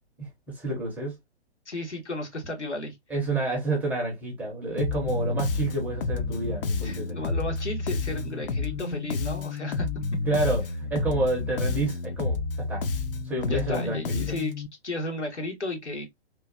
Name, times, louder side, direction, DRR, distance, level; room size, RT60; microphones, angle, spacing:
voice 1, 0.2-1.2 3.1-7.2 10.2-12.8 13.2-14.2, right 2 dB, 5° right, 0.5 m, -29 dB
voice 2, 1.7-3.0 6.8-9.9 13.4-14.5 14.8-16.1, left 1 dB, 85° left, 1.3 m, -33 dB
Bass guitar, 4.8-14.7, left 4 dB, 55° left, 0.5 m, -30 dB
2.9 x 2.3 x 2.4 m
figure-of-eight pair, 120°, 34 cm